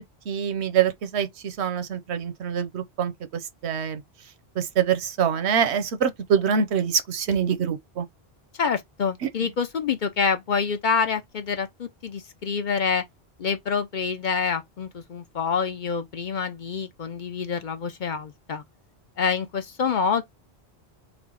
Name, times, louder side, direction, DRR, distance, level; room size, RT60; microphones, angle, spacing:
voice 1, 0.3-4.0 4.6-8.1, right 7 dB, 85° right, 1.0 m, -25 dB
voice 2, 8.5-13.0 13.4-18.6 19.2-20.2, left 6 dB, 50° left, 0.7 m, -27 dB
3.5 x 3.2 x 3.6 m
omnidirectional pair, 1.1 m